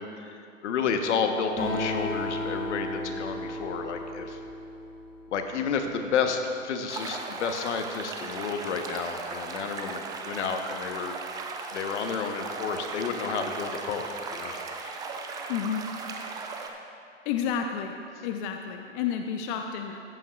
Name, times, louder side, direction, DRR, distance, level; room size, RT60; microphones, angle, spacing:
voice 1, 0.0-4.4 5.3-11.2 11.7-15.1, left 6 dB, 70° left, 6 dB, 1.0 m, -31 dB
Acoustic guitar, 1.6-5.4, left 1 dB, 20° left, 2.2 m, -34 dB
sound 1, 6.9-16.7, right 4 dB, 10° right, 0.3 m, -37 dB
voice 2, 15.5-15.8 17.3-17.9 18.2-20.0, left 8 dB, 45° left, 4 dB, 0.6 m, -30 dB
14.0 x 8.3 x 2.3 m, 2.6 s
hypercardioid pair, 105°, 37 cm